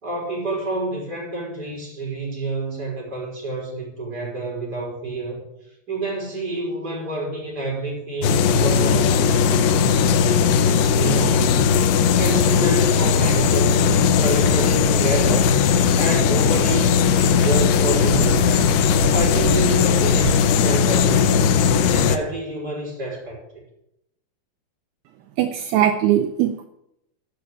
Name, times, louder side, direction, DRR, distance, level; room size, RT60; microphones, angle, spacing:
voice 1, 0.0-5.5 5.9-15.5 16.0-18.8 19.1-21.5 21.9-23.6, right 2 dB, 25° right, -3 dB, 5.3 m, -28 dB
sound 1, 8.2-22.2, left 7 dB, 90° left, 2.9 m, -18 dB
sound 2, 14.4-20.4, right 5 dB, 65° right, 4.8 m, -32 dB
voice 2, 25.4-26.7, right 11 dB, 80° right, 6 dB, 2.6 m, -20 dB
15.0 x 6.3 x 7.4 m, 0.83 s
omnidirectional pair, 4.6 m